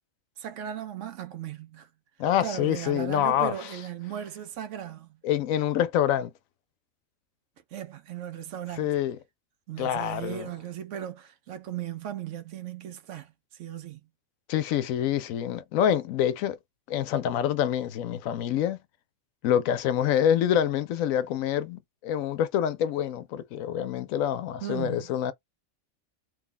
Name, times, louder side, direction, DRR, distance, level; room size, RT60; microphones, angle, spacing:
voice 1, 0.4-1.9 2.4-5.2 7.7-8.9 9.7-14.0 24.6-25.1, right 10 dB, 70° right, 0.9 m, -37 dB
voice 2, 2.2-3.5 5.2-6.3 8.8-9.2 9.8-10.5 14.5-16.6 16.9-18.8 19.4-25.3, left 10 dB, 80° left, 1.0 m, -26 dB
3.1 x 2.3 x 3.7 m
omnidirectional pair, 1.4 m